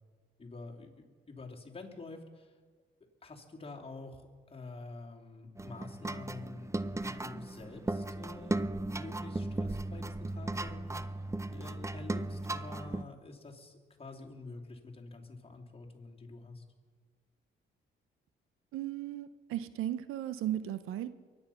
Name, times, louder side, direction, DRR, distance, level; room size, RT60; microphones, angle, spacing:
voice 1, 0.4-2.5 3.2-11.3 11.5-16.6, left 3 dB, 30° left, 0 dB, 2.8 m, -48 dB
sound 1, 5.6-13.0, right 2 dB, 15° right, 0.6 m, -36 dB
voice 2, 18.7-21.1, right 12 dB, 85° right, 14 dB, 0.7 m, -36 dB
23.5 x 9.4 x 5.7 m, 1.5 s
cardioid pair, 65°, 21 cm